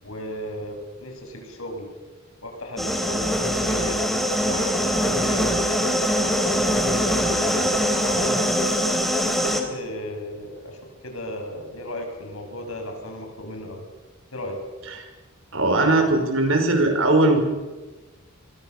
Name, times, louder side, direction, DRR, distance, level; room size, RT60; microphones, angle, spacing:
voice 1, 0.0-1.9 2.4-4.0 4.4-5.5 6.1-8.5 9.4-10.8 11.0-13.8 14.3-14.6, left 1 dB, 80° left, 4 dB, 6.8 m, -35 dB
sound 1, 2.8-9.6, equal, ahead, 3.5 m, -22 dB
voice 2, 15.5-17.4, right 2 dB, 65° right, 5 dB, 5.8 m, -19 dB
28.0 x 23.5 x 6.9 m, 1.2 s
head